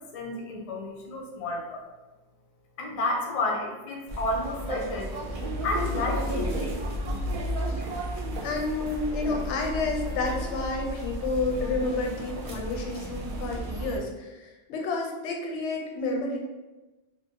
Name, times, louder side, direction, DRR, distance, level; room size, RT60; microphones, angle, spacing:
voice 1, 0.0-1.8 2.8-5.1 5.6-6.8 7.1-7.2, left 2 dB, 55° left, 0 dB, 0.4 m, -31 dB
sound 1, 4.1-14.0, equal, 55° right, 0.4 m, -33 dB
voice 2, 8.4-16.4, left 3 dB, 90° left, 0 dB, 0.9 m, -30 dB
2.5 x 2.3 x 2.7 m, 1.1 s
omnidirectional pair, 1.2 m